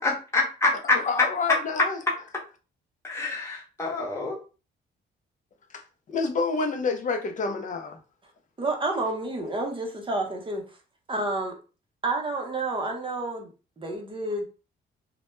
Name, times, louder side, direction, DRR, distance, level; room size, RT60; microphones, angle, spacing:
voice 1, 0.0-1.0 3.0-4.4, left 3 dB, 15° left, -3 dB, 0.9 m, -26 dB
voice 2, 0.9-2.0 5.7-5.8 6.1-8.0, left 4 dB, 40° left, 4 dB, 0.5 m, -28 dB
voice 3, 8.6-10.6 11.1-11.6 12.0-13.5 13.8-14.4, right 2 dB, 25° right, 1 dB, 0.6 m, -29 dB
2.1 x 2.1 x 3.0 m, 0.34 s
cardioid pair, 90°, 20 cm